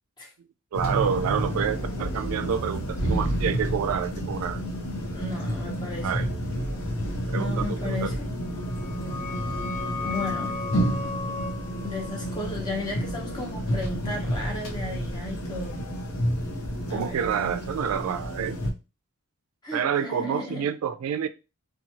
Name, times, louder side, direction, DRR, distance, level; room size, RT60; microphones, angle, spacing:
sound 1, 0.7-18.7, equal, 75° left, 0.7 m, -30 dB
voice 1, 0.7-4.6 6.0-6.3 7.3-8.2 16.9-18.6 19.7-21.3, right 7 dB, 80° right, 0.3 m, -28 dB
voice 2, 5.1-6.3 7.3-8.3 10.0-10.6 11.8-15.7 16.9-17.2 19.6-20.7, left 3 dB, 20° left, 0.8 m, -34 dB
sound 2, 8.5-13.9, left 4 dB, 40° left, 1.2 m, -36 dB
2.9 x 2.2 x 2.7 m
head